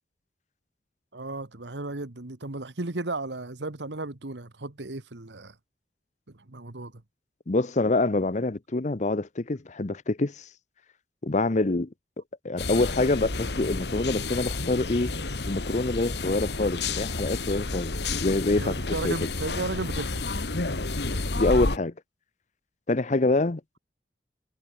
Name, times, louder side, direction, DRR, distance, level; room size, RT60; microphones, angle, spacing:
voice 1, 1.1-5.5 6.5-7.0 18.6-20.3, right 2 dB, 90° right, 1.6 m, -34 dB
voice 2, 7.5-10.5 11.2-11.9 12.4-15.1 15.5-17.9 18.2-19.1 21.3-21.9 22.9-23.8, left 2 dB, 40° left, 0.8 m, -26 dB
sound 1, 12.6-21.8, left 3 dB, 70° left, 1.9 m, -30 dB
head